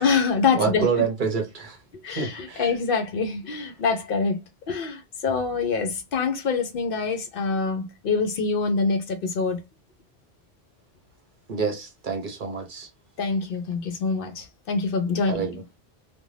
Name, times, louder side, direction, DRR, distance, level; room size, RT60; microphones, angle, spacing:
voice 1, 0.0-0.9 2.0-4.4 4.7-9.6 13.2-15.6, left 4 dB, 65° left, 0.7 m, -25 dB
voice 2, 0.6-1.8 2.2-2.7 11.5-12.9 15.3-15.6, right 5 dB, 55° right, 0.8 m, -27 dB
2.5 x 2.2 x 3.1 m
omnidirectional pair, 1.1 m